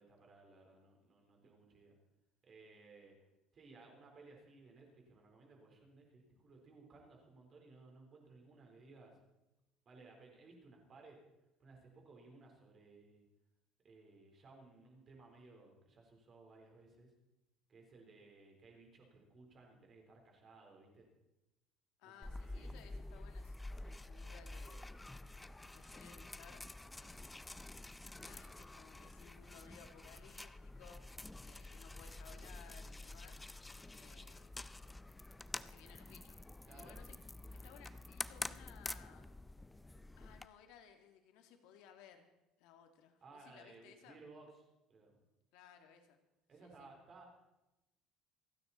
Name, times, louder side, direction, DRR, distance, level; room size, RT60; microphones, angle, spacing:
voice 1, 0.0-2.0 2.4-3.2 3.5-9.2 9.9-11.2 11.6-13.2 13.8-17.1 17.7-21.1 22.0-22.7 36.6-37.0 43.2-44.5 44.9-45.1 46.5-47.5, right 3 dB, 30° right, 2 dB, 4.2 m, -60 dB
voice 2, 22.0-24.9 25.6-26.6 27.0-27.3 28.2-31.0 31.4-33.4 33.7-34.5 35.6-36.4 36.6-37.2 37.5-39.3 40.2-42.3 42.6-44.2 45.5-46.2 46.6-46.9, left 8 dB, 75° left, 6 dB, 2.2 m, -61 dB
sound 1, 22.2-40.5, left 2 dB, 10° left, 0.4 m, -49 dB
28.0 x 9.5 x 4.3 m, 0.96 s
cardioid pair, 155°, 0 cm